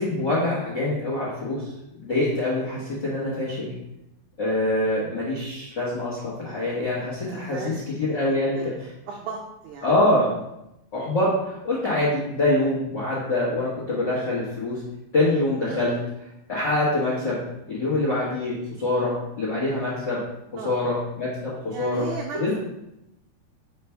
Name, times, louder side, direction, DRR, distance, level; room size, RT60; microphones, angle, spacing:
voice 1, 0.0-1.7 2.0-3.7 4.4-8.9 9.8-10.3 10.9-14.8 15.1-16.0 16.5-17.4 17.7-20.2 20.6-22.0 22.3-22.6, left 1 dB, 65° left, -8 dB, 1.0 m, -25 dB
voice 2, 6.5-7.7 8.1-8.2 8.5-8.8 9.1-9.9 16.6-16.7 20.6-20.8 21.7-22.6, right 6 dB, 85° right, -1 dB, 1.7 m, -37 dB
5.0 x 3.4 x 5.6 m, 0.86 s
omnidirectional pair, 4.2 m